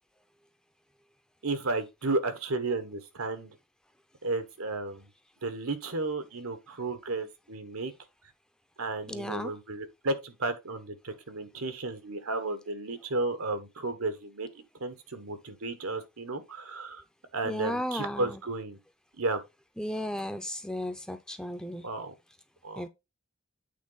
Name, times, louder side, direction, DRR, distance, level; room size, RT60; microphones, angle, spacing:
voice 1, 1.4-3.5 4.2-5.1 5.4-7.9 8.8-14.5 14.8-17.0 17.3-18.8 19.2-19.4 21.8-22.1 22.6-22.8, right 2 dB, 85° right, 1.3 m, -33 dB
voice 2, 9.1-9.5 17.4-18.4 19.8-21.8 22.8-22.9, equal, 5° left, 0.6 m, -34 dB
8.4 x 4.0 x 4.0 m
head